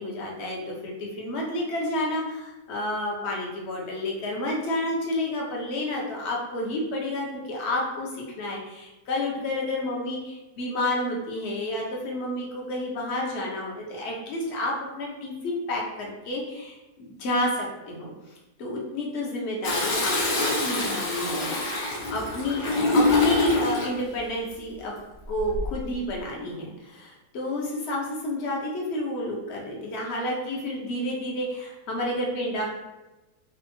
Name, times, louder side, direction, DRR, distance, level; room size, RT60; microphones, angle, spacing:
voice 1, 0.0-8.1 8.4-18.1 18.6-21.6 22.1-22.7 22.9-24.9 25.3-32.7, left 1 dB, 50° left, -2 dB, 0.9 m, -30 dB
Toilet flush, 19.6-24.0 25.3-25.8, left 2 dB, 70° left, 1.4 m, -25 dB
4.3 x 2.4 x 2.6 m, 1.1 s
omnidirectional pair, 1.7 m